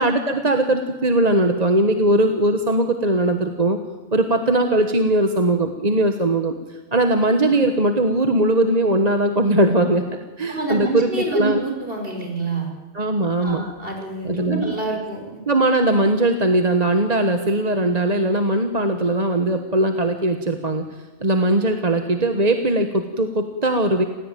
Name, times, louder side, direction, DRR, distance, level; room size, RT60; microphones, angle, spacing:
voice 1, 0.0-3.8 4.1-6.5 6.9-10.0 10.4-11.6 12.9-13.7 14.2-14.7 15.5-20.8 21.2-24.0, right 1 dB, 35° right, 6 dB, 1.4 m, -19 dB
voice 2, 10.5-12.7 13.4-15.4, right 3 dB, 55° right, 2 dB, 5.2 m, -27 dB
28.0 x 16.0 x 9.2 m, 1.3 s
omnidirectional pair, 1.2 m